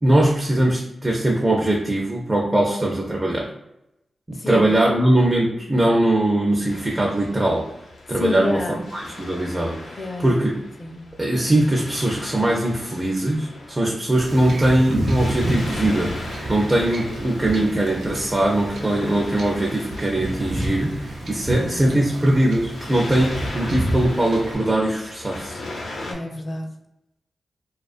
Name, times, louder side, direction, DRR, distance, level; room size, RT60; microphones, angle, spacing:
voice 1, 0.0-3.5 4.3-7.7 8.1-9.8 10.2-10.6 11.2-25.6, right 1 dB, 25° right, -1 dB, 0.4 m, -21 dB
voice 2, 4.3-5.0 8.2-8.8 10.0-10.4 10.8-11.0 17.6-17.7 21.5-22.0 26.0-26.7, left 2 dB, 45° left, 3 dB, 0.4 m, -29 dB
Waves surf, 6.7-26.1, left 2 dB, 90° left, 0.6 m, -39 dB
Wind / Ocean / Boat Water vehicle, 14.2-24.5, right 1 dB, 80° right, 0.5 m, -29 dB
2.3 x 2.3 x 2.4 m, 0.86 s
cardioid pair, 55°, 0 cm